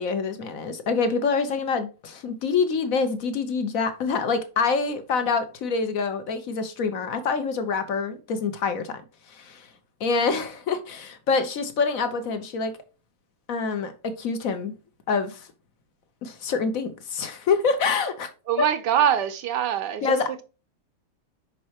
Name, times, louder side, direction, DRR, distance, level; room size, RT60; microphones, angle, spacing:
voice 1, 0.0-9.0 9.3-9.7 10.0-12.7 13.5-14.7 15.1-15.5 16.2-18.3 18.6-18.7 20.0-20.4, left 5 dB, 55° left, 1.0 m, -26 dB
voice 2, 18.5-20.2, right 9 dB, 65° right, 1.2 m, -23 dB
6.4 x 5.7 x 2.9 m
omnidirectional pair, 2.3 m